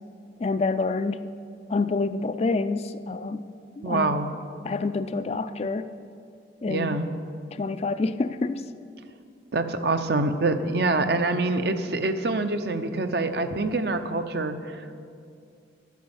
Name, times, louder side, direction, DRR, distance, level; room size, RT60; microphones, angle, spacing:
voice 1, 0.4-1.3 1.7-3.4 3.8-4.2 4.6-5.9 6.6-7.0 7.5-8.6, left 3 dB, 35° left, 11 dB, 0.3 m, -27 dB
voice 2, 3.8-4.3 6.7-7.1 9.5-14.9, right 2 dB, 60° right, 9 dB, 0.7 m, -25 dB
10.5 x 9.4 x 7.0 m, 2.4 s
head